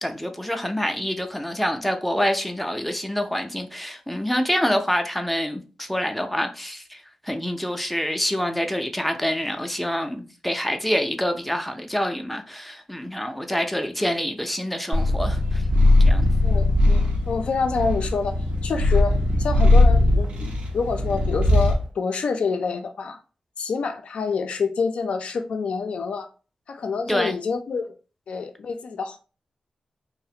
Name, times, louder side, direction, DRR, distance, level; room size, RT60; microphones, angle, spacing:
voice 1, 0.0-15.6 16.0-16.3 27.1-27.3, equal, ahead, 0.4 m, -26 dB
Purr, 14.9-21.8, left 2 dB, 85° right, 0.6 m, -19 dB
voice 2, 16.4-23.2 23.6-26.3 26.7-27.9 28.3-29.2, left 5 dB, 75° left, 0.3 m, -27 dB
2.4 x 2.0 x 2.7 m
cardioid pair, 80°, 2 cm